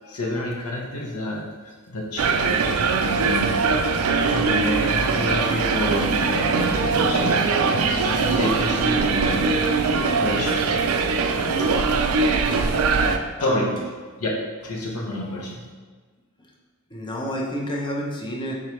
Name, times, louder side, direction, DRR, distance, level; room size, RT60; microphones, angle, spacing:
voice 1, 0.0-3.8 4.3-7.5 8.0-11.0 11.6-11.7 13.4-13.8 14.2-14.3 14.6-15.6, left 1 dB, 85° left, -2 dB, 0.7 m, -29 dB
sound 1, 2.2-13.2, right 4 dB, 70° right, 0.4 m, -21 dB
sound 2, 4.9-10.4, right 2 dB, 40° left, 1.0 m, -33 dB
voice 2, 13.4-13.7 16.9-18.5, equal, 20° left, -1 dB, 0.6 m, -29 dB
4.3 x 3.8 x 3.1 m, 1.4 s
head